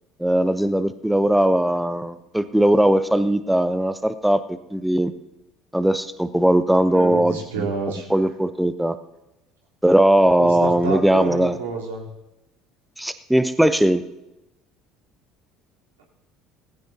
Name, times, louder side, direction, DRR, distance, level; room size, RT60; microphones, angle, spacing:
voice 1, 0.2-5.1 5.7-7.7 8.1-9.0 9.8-11.6 13.0-14.0, right 1 dB, 5° right, 11 dB, 0.7 m, -19 dB
voice 2, 6.9-8.1 10.4-12.0, right 4 dB, 80° right, -4 dB, 3.6 m, -29 dB
18.5 x 16.0 x 2.8 m, 0.98 s
hypercardioid pair, 60°, 0 cm